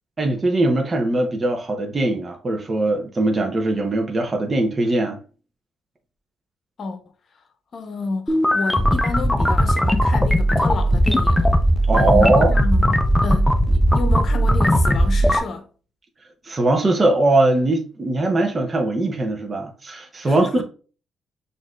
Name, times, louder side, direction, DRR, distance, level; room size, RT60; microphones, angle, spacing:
voice 1, 0.2-5.2 11.9-12.5 16.4-20.6, right 2 dB, 30° right, 0.7 m, -20 dB
voice 2, 7.7-11.5 11.9-15.7 20.3-20.6, left 3 dB, 50° left, 0.8 m, -30 dB
sound 1, 8.3-15.4, equal, 10° left, 0.5 m, -18 dB
6.2 x 2.6 x 2.4 m
cardioid pair, 90°, 0 cm